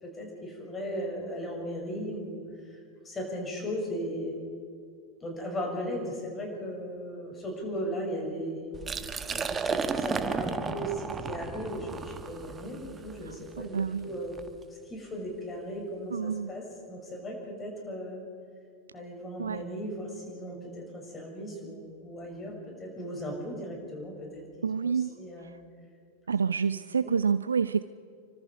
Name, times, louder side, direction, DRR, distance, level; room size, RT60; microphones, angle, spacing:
voice 1, 0.0-2.4 2.7-2.8 3.0-4.5 5.2-14.3 14.8-18.2 18.9-22.5 22.8-25.5 27.0-27.1, equal, 20° left, 0 dB, 6.7 m, -37 dB
Liquid, 8.7-14.5, right 5 dB, 20° right, 1.3 m, -34 dB
voice 2, 13.6-14.1 16.1-16.5 19.4-19.6 24.6-25.1 26.3-27.8, right 6 dB, 70° right, 15 dB, 0.5 m, -28 dB
28.0 x 24.5 x 4.8 m, 2.3 s
figure-of-eight pair, 90°, 0 cm